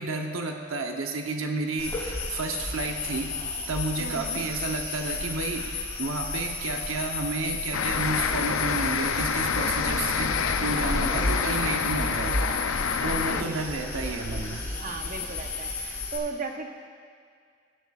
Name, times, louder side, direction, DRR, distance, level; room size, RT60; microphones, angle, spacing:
voice 1, 0.0-3.3 3.7-12.4 12.7-14.6, right 3 dB, 85° right, 3 dB, 0.9 m, -31 dB
sound 1, 1.8-16.2, left 3 dB, 15° left, 3.2 m, -32 dB
voice 2, 4.0-4.4 9.8-11.2 13.2-14.2 14.8-16.7, right 3 dB, 40° right, 3 dB, 0.9 m, -38 dB
sound 2, 7.7-13.4, left 6 dB, 80° left, 0.5 m, -28 dB
17.0 x 11.5 x 2.4 m, 2.2 s
head